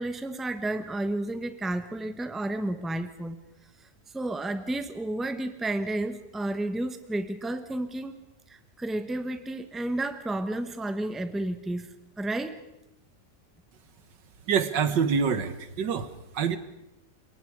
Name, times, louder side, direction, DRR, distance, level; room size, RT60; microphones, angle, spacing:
voice 1, 0.0-3.4 4.1-8.2 8.5-11.9 12.2-12.6, right 1 dB, ahead, 9 dB, 1.0 m, -31 dB
voice 2, 14.5-16.6, right 6 dB, 85° right, 12 dB, 2.0 m, -26 dB
27.5 x 22.5 x 4.8 m, 0.90 s
omnidirectional pair, 1.9 m